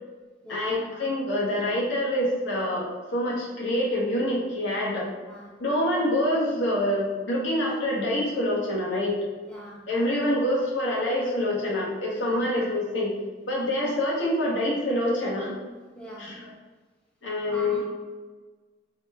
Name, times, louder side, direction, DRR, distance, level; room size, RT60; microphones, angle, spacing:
voice 1, 0.5-5.1 5.6-9.2 9.9-13.1 13.4-15.6 16.2-16.5 17.2-17.8, left 1 dB, 80° left, -4 dB, 0.9 m, -26 dB
voice 2, 9.5-9.8 12.2-12.4 16.0-16.3 17.5-17.8, equal, 5° left, -5 dB, 0.4 m, -42 dB
4.9 x 2.1 x 2.3 m, 1.4 s
head